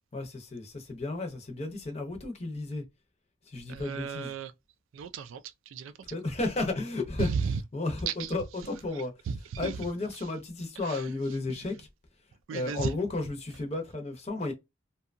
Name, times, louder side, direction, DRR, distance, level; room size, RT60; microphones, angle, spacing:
voice 1, 0.1-2.8 3.5-4.3 6.0-7.3 7.7-9.1 9.6-11.9 12.5-14.5, left 2 dB, 35° left, 0.6 m, -33 dB
voice 2, 3.7-4.5 4.9-5.9 7.2-7.6 8.1-8.3 9.3-9.8 10.8-11.0 12.5-12.9, right 6 dB, 80° right, 0.3 m, -34 dB
2.7 x 2.2 x 2.4 m
head